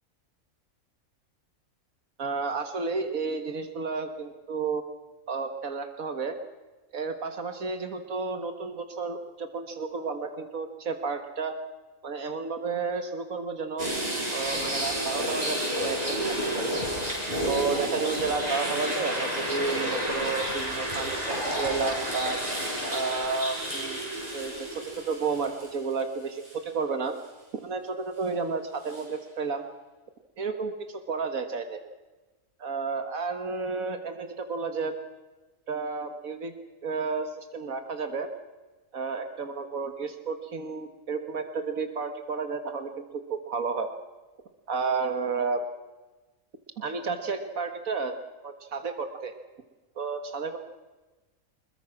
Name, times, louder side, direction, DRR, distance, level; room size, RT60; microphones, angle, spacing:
voice 1, 2.2-4.8 5.3-6.4 6.9-11.6 12.0-13.9 14.3-16.7 17.4-22.4 22.9-24.1 24.3-27.1 27.6-29.7 30.4-31.8 32.6-34.9 35.7-36.5 36.8-38.3 38.9-43.9 44.7-45.7 46.8-48.1 48.4-49.3 50.0-50.6, right 4 dB, 75° right, 7 dB, 1.9 m, -32 dB
sound 1, 13.8-26.0 26.4-26.5 28.9-29.0, equal, 25° right, 7.8 m, -30 dB
26.5 x 21.5 x 6.0 m, 1.2 s
omnidirectional pair, 1.5 m